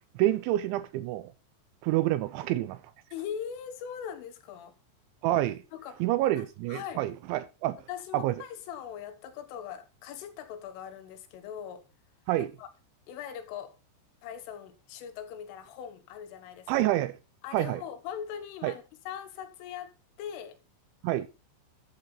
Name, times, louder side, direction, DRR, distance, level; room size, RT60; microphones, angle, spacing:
voice 1, 0.2-1.3 1.8-2.8 5.2-5.6 6.0-7.8 8.1-8.4 12.3-12.5 16.7-17.2 17.5-17.8 18.6-18.7 21.0-21.3, right 15 dB, 80° right, 2.9 m, -27 dB
voice 2, 3.1-4.8 5.7-6.0 6.4-7.0 7.9-11.9 12.4-12.7 13.1-13.8 14.2-16.7 17.4-19.9 20.2-20.6, left 9 dB, 80° left, 3.8 m, -41 dB
12.0 x 8.3 x 3.9 m
omnidirectional pair, 5.6 m